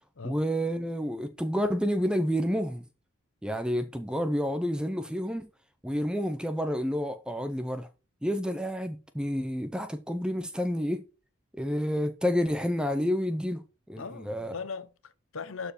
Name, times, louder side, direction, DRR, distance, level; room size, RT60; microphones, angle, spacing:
voice 1, 0.2-2.8 3.4-5.5 5.8-7.9 8.2-11.0 11.5-14.5, equal, 5° right, 0.8 m, -29 dB
voice 2, 14.0-15.7, left 5 dB, 75° left, 0.8 m, -39 dB
12.0 x 4.6 x 4.3 m
head